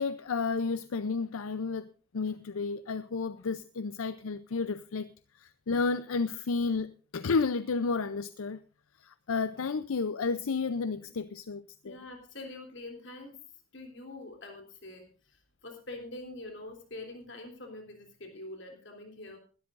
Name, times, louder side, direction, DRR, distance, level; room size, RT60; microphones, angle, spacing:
voice 1, 0.0-5.1 5.3-8.6 9.0-12.0, left 4 dB, 80° left, 0.5 m, -32 dB
voice 2, 11.8-13.4 13.7-19.4, left 2 dB, 55° left, 3.4 m, -45 dB
20.5 x 12.5 x 2.5 m
head